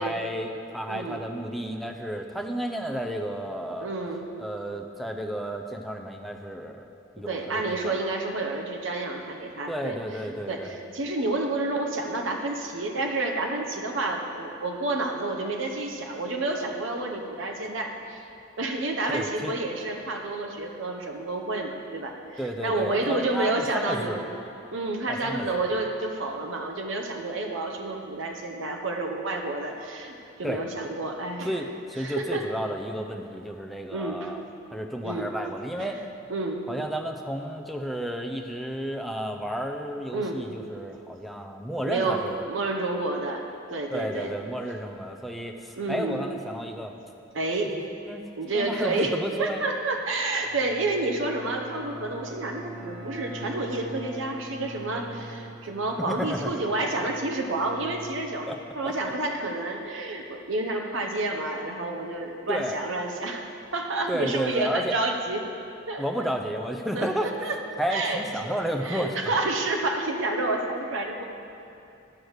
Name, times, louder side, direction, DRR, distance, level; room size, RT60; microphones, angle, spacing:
voice 1, 0.0-3.9 4.4-6.8 7.2-7.9 9.7-10.7 19.1-19.5 22.4-24.2 25.1-25.7 30.4-30.6 31.4-34.4 34.7-36.0 36.7-42.5 43.9-46.9 47.7-48.2 48.5-49.7 56.1-56.5 58.5-58.6 58.8-58.9 62.5-62.8 64.1-65.0 66.0-67.3 67.8-69.2, equal, ahead, 2 dB, 0.5 m, -32 dB
voice 2, 0.9-1.2 3.8-4.3 7.2-18.2 18.6-24.4 24.7-31.6 32.0-32.5 33.9-34.3 35.0-35.3 35.8-36.0 36.3-36.6 40.1-40.4 41.9-43.4 43.7-44.4 45.8-46.3 47.3-47.7 48.4-58.5 58.7-63.5 63.7-65.4 65.9-66.2 66.9-67.6 67.9-68.2 68.8-71.3, right 2 dB, 65° right, 2 dB, 0.8 m, -29 dB
Bowed string instrument, 50.4-58.9, right 1 dB, 30° right, 1.9 m, -43 dB
12.0 x 4.7 x 6.5 m, 2.7 s
head